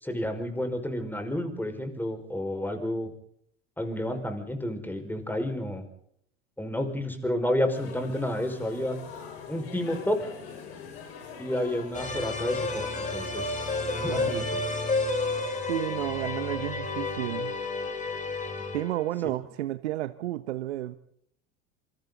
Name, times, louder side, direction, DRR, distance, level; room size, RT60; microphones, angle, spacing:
voice 1, 0.0-3.1 3.8-5.8 6.6-9.0 9.5-10.3 11.4-13.6 14.0-14.6, left 1 dB, 5° left, 6 dB, 5.3 m, -30 dB
sound 1, 7.7-14.4, left 6 dB, 70° left, 6.7 m, -44 dB
sound 2, 11.9-19.1, left 3 dB, 20° left, 7.4 m, -31 dB
voice 2, 14.1-14.5 15.7-17.5 18.7-21.0, right 14 dB, 75° right, 13 dB, 1.1 m, -32 dB
27.0 x 25.5 x 4.0 m, 0.68 s
hypercardioid pair, 80°, 33 cm